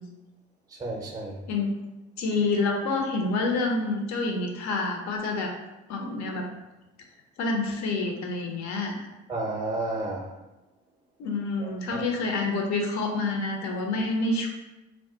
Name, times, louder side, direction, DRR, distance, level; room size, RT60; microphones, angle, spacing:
voice 1, 0.8-1.4 9.3-10.3 11.6-12.0, right 2 dB, 10° right, 0 dB, 0.6 m, -32 dB
voice 2, 2.2-5.5 5.9-6.5 7.4-9.0 11.2-14.5, left 3 dB, 55° left, 2 dB, 0.7 m, -27 dB
2.3 x 2.2 x 3.8 m, 1.0 s
hypercardioid pair, 65°, 33 cm